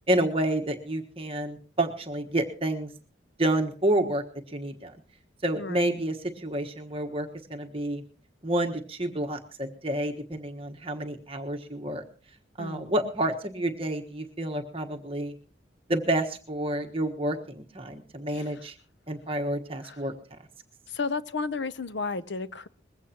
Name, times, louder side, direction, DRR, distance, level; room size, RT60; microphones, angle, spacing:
voice 1, 0.1-2.9 3.4-4.2 4.5-4.9 5.4-8.0 8.4-12.0 12.6-15.3 15.9-18.7 19.1-20.1, right 1 dB, 30° right, 4 dB, 1.4 m, -29 dB
voice 2, 5.6-5.9 12.6-12.9 18.3-18.4 19.8-20.0 20.9-22.7, left 4 dB, 70° left, 15 dB, 0.7 m, -33 dB
21.0 x 16.0 x 3.0 m, 0.38 s
head